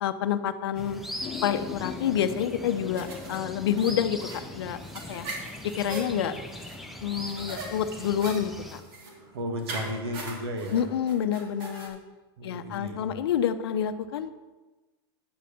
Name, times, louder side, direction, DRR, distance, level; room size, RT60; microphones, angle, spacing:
voice 1, 0.0-1.0 1.4-4.8 5.1-5.3 5.6-6.4 7.0-8.8 10.7-12.0 12.4-14.3, left 9 dB, 80° left, 11 dB, 0.7 m, -28 dB
sound 1, 0.7-8.8, left 1 dB, ahead, 1.0 m, -41 dB
sound 2, 1.2-8.7, left 9 dB, 30° left, 0.5 m, -44 dB
sound 3, 3.0-11.9, right 2 dB, 65° right, 2.6 m, -41 dB
voice 2, 9.3-10.9 12.4-13.1, equal, 85° right, 4 dB, 1.7 m, -34 dB
9.6 x 5.1 x 6.9 m, 1.2 s
supercardioid pair, 120°, 13 cm